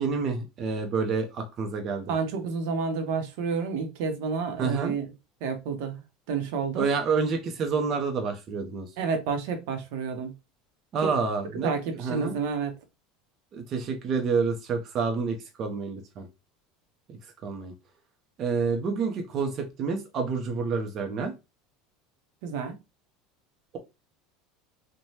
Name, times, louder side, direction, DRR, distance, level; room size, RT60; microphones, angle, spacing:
voice 1, 0.0-2.1 4.6-4.9 6.7-8.9 10.9-12.4 13.5-16.3 17.1-17.2 17.4-17.7 18.4-21.3, right 5 dB, 40° right, 0.5 m, -28 dB
voice 2, 2.1-5.0 5.4-6.0 6.3-6.9 9.0-10.3 11.0-11.1 11.6-12.7 22.4-22.8, right 5 dB, 75° right, 0.7 m, -30 dB
3.1 x 2.1 x 2.8 m
supercardioid pair, 125°, 0 cm